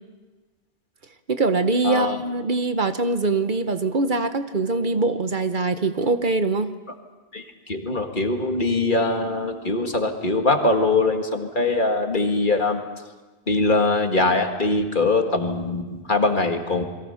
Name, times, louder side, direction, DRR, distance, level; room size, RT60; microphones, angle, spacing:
voice 1, 1.3-6.7, right 3 dB, 50° right, 9 dB, 1.1 m, -23 dB
voice 2, 1.8-2.2 7.3-12.8 13.5-16.8, left 2 dB, 50° left, 4 dB, 2.1 m, -22 dB
29.0 x 22.5 x 5.7 m, 1.3 s
omnidirectional pair, 1.1 m